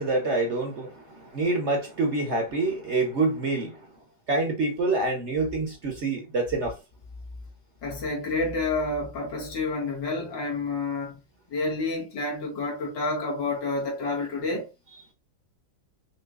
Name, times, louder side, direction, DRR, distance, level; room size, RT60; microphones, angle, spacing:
voice 1, 0.0-3.9 4.3-6.8, right 3 dB, 45° right, 1.1 m, -26 dB
voice 2, 7.8-11.2 11.5-14.7, left 3 dB, 80° left, 2.5 m, -29 dB
5.8 x 3.0 x 2.4 m
omnidirectional pair, 1.9 m